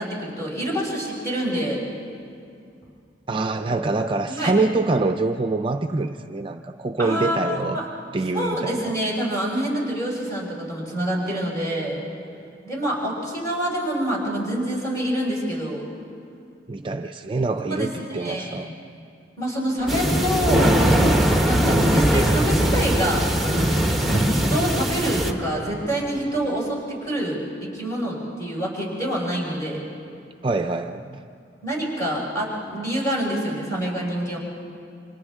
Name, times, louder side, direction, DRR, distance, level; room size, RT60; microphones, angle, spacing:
voice 1, 0.0-1.8 4.3-4.5 7.0-7.9 8.3-12.0 12.6-15.9 17.6-18.7 19.4-20.8 21.4-23.3 24.1-29.8 31.6-34.4, equal, 20° left, -5 dB, 5.5 m, -26 dB
voice 2, 3.3-7.8 8.1-8.9 16.7-18.7 30.4-31.2, right 3 dB, 30° right, 6 dB, 0.5 m, -25 dB
Train, 19.8-26.7, equal, 60° left, 4.6 m, -36 dB
sound 1, 19.9-25.3, right 1 dB, ahead, 1.2 m, -20 dB
29.0 x 26.0 x 3.6 m, 2.5 s
head